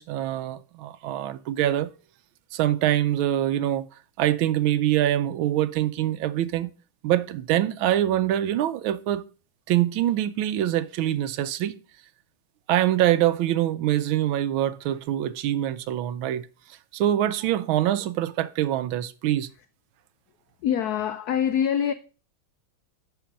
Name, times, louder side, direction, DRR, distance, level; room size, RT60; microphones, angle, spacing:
voice 1, 0.0-1.9 2.5-3.9 4.2-6.7 7.0-9.2 9.7-11.8 12.7-16.5 16.9-19.5, right 12 dB, 80° right, 1.4 m, -24 dB
voice 2, 20.6-21.9, left 9 dB, 85° left, 0.8 m, -24 dB
10.5 x 4.3 x 5.1 m
omnidirectional pair, 2.3 m